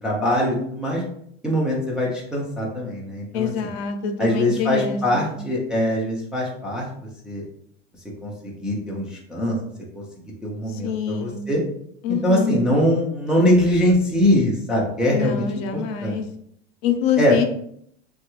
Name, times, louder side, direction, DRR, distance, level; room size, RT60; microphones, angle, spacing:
voice 1, 0.0-1.0 1.4-3.7 4.2-6.9 7.2-7.4 8.2-9.5 9.9-10.0 10.4-11.6 12.1-16.2 17.2-17.4, left 1 dB, 5° right, -5 dB, 0.3 m, -22 dB
voice 2, 3.3-5.4 10.8-11.4 12.0-12.5 15.1-16.2 16.8-17.4, left 7 dB, 80° left, 7 dB, 0.6 m, -25 dB
3.1 x 2.3 x 2.9 m, 0.68 s
supercardioid pair, 155°, 30 cm